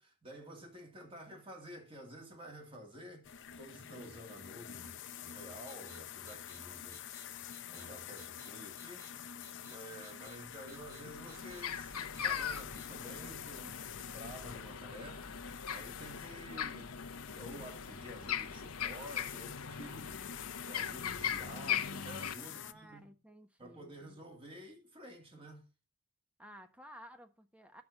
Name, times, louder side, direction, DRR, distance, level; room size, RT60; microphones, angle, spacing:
voice 1, 0.0-16.9 17.3-20.2 20.6-23.1 23.6-25.7, equal, 25° right, 2.8 m, -51 dB
sound 1, 3.2-22.7, left 9 dB, 55° left, 0.7 m, -48 dB
sound 2, 5.7-6.0 6.3-6.6 6.9-7.2 7.5-7.8 8.2-8.5 8.8-9.1 9.4-9.8 10.0-10.4 10.7-11.0 11.3-11.6 11.9-12.3 12.5-12.9, right 5 dB, 45° right, 2.1 m, -58 dB
sound 3, 10.3-10.4 10.7-22.3, left 8 dB, 85° left, 1.0 m, -40 dB
voice 2, 22.4-24.2 26.4-27.8, equal, 5° right, 1.2 m, -55 dB
10.5 x 7.0 x 5.9 m
head